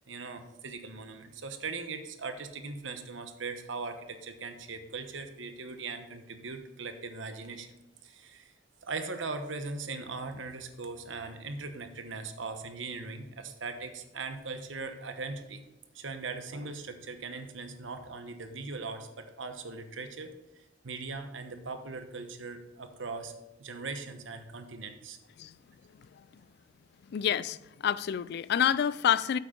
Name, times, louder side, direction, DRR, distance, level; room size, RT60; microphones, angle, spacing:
voice 1, 0.1-7.7 8.0-8.5 8.8-15.6 15.9-20.3 20.8-23.3 23.6-25.2, right 4 dB, 75° right, 1.1 m, -39 dB
voice 2, 27.1-27.6 27.8-29.4, left 9 dB, 60° left, 0.3 m, -27 dB
8.3 x 8.2 x 3.8 m
head